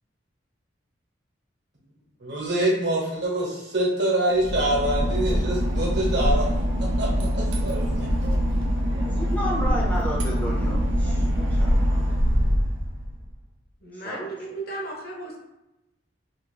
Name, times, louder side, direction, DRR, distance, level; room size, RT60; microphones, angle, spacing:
voice 1, 2.2-6.5 6.8-8.3, right 1 dB, 60° right, -3 dB, 0.9 m, -25 dB
Boat Water vehicle / Engine, 4.3-13.3, equal, 85° right, 0.6 m, -24 dB
voice 2, 9.1-11.7 13.9-14.3, equal, 5° left, -4 dB, 0.4 m, -32 dB
voice 3, 13.8-15.4, right 2 dB, 50° left, -1 dB, 0.6 m, -35 dB
2.8 x 2.4 x 3.2 m, 0.93 s
head